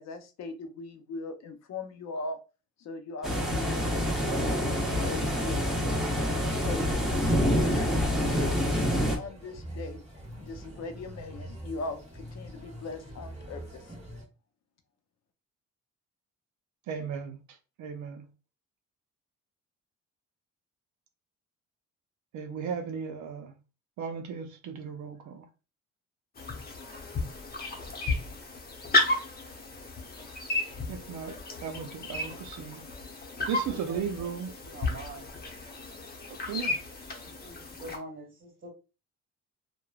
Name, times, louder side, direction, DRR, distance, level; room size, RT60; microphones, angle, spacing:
voice 1, 0.0-2.4 2.8-4.5 4.8-6.8 7.2-10.0 10.4-13.9, left 3 dB, 60° left, 0.6 m, -40 dB
sound 1, 3.2-9.2, equal, ahead, 0.9 m, -27 dB
sound 2, 8.0-14.2, right 1 dB, 20° right, 1.2 m, -45 dB
voice 2, 16.9-18.3 22.3-23.6 24.0-25.5 30.9-32.9 33.5-34.5 36.3-36.8, right 7 dB, 70° right, 0.5 m, -36 dB
sound 3, 26.4-38.0, left 2 dB, 30° left, 0.8 m, -33 dB
voice 3, 33.4-34.0 34.7-35.2 37.8-38.7, right 2 dB, 40° right, 1.6 m, -43 dB
3.1 x 2.1 x 2.3 m
cardioid pair, 90°, 30 cm